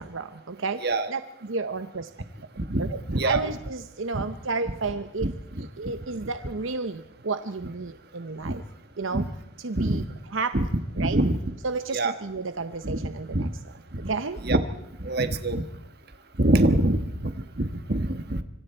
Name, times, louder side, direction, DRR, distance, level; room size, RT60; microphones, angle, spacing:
voice 1, 0.0-2.1 2.8-5.3 5.8-8.6 9.0-9.3 9.6-10.0 10.3-10.5 11.0-11.2 11.6-13.5 14.1-14.4, right 4 dB, 70° right, 10 dB, 0.8 m, -31 dB
voice 2, 2.6-3.4 4.1-4.2 5.2-5.7 8.4-8.6 9.1-9.3 9.8-10.1 10.5-10.6 11.0-11.4 11.9-12.1 12.8-13.5 13.9-14.0 14.4-14.6 15.0-15.6 16.4-18.4, right 1 dB, 50° right, 9 dB, 1.4 m, -25 dB
25.5 x 25.0 x 4.5 m, 0.80 s
head